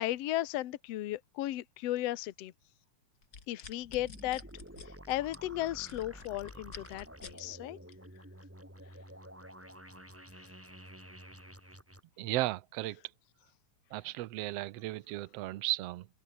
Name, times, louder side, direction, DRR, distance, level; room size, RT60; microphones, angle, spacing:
voice 1, 0.0-2.5 3.5-4.4 4.8-7.8, left 15 dB, 65° left, 1.9 m, -35 dB
sound 1, 3.2-7.4 7.9-8.2, left 5 dB, 30° left, 2.6 m, -50 dB
sound 2, 3.8-12.0, equal, 5° right, 5.5 m, -50 dB
voice 2, 12.2-13.0 13.9-16.1, right 17 dB, 75° right, 1.5 m, -35 dB
open air
omnidirectional pair, 3.6 m